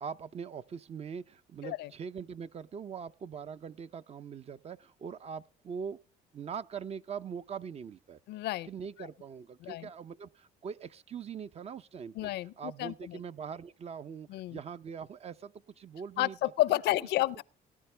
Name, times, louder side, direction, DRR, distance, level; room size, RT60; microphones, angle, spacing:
voice 1, 0.0-6.0 6.3-8.2 8.7-12.3 12.6-16.5, right 6 dB, 40° right, 0.6 m, -42 dB
voice 2, 8.3-8.7 9.0-9.1 9.6-9.9 12.2-13.2 14.3-14.6 16.2-17.4, left 16 dB, 80° left, 0.6 m, -31 dB
18.0 x 10.5 x 3.3 m
cardioid pair, 110°, 17 cm